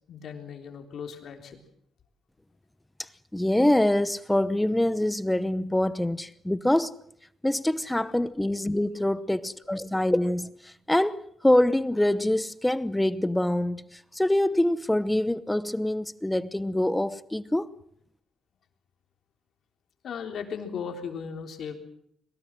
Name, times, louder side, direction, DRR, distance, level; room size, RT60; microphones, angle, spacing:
voice 1, 0.1-1.6 8.0-8.1 20.0-21.7, left 6 dB, 60° left, 3.7 m, -37 dB
voice 2, 3.0-6.9 7.4-17.7, left 1 dB, 10° left, 0.8 m, -25 dB
23.0 x 19.5 x 7.6 m
cardioid pair, 90°, 0 cm